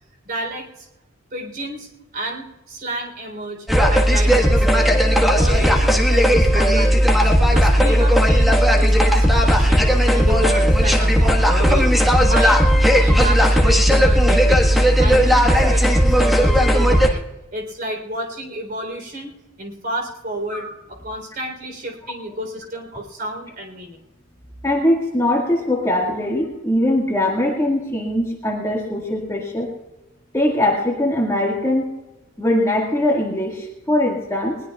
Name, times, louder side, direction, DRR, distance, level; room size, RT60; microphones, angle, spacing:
voice 1, 0.2-0.9 1.3-1.9 2.1-4.9 5.3-11.9 12.1-12.6 12.9-14.7 15.0-17.2 17.5-19.3 19.6-24.0, right 1 dB, 45° right, 3 dB, 3.6 m, -31 dB
sound 1, 3.7-17.1, equal, ahead, 1.4 m, -15 dB
voice 2, 24.6-29.7 30.3-31.9 32.4-34.6, left 1 dB, 15° left, -2 dB, 1.8 m, -21 dB
21.0 x 20.0 x 2.4 m, 1.0 s
head